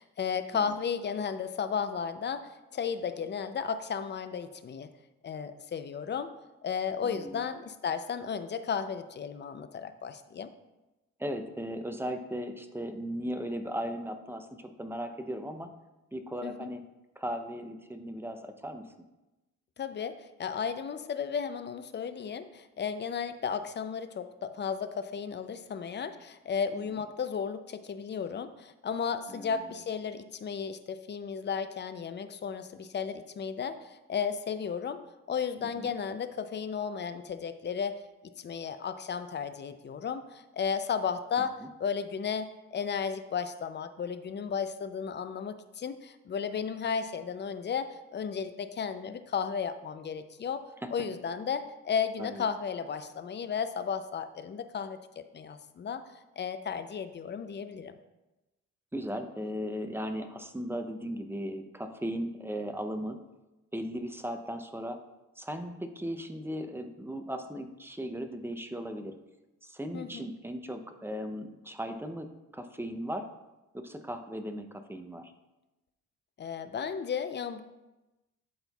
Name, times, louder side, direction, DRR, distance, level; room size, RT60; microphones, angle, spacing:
voice 1, 0.0-4.9 5.2-6.3 6.6-10.5 16.4-16.7 19.8-35.0 35.3-38.0 38.4-50.6 50.9-56.0 56.4-57.9 69.9-70.3 76.4-77.6, left 6 dB, 35° left, 11 dB, 0.5 m, -34 dB
voice 2, 7.0-7.4 11.2-15.7 16.1-16.8 17.2-18.8 29.3-29.7 35.7-35.9 50.8-50.9 52.2-52.5 58.9-63.2 63.7-65.0 65.4-69.1 69.6-72.3 72.5-73.3 73.7-75.3, equal, 10° right, 7 dB, 0.6 m, -37 dB
11.5 x 4.4 x 2.3 m, 1.0 s
cardioid pair, 90°, 30 cm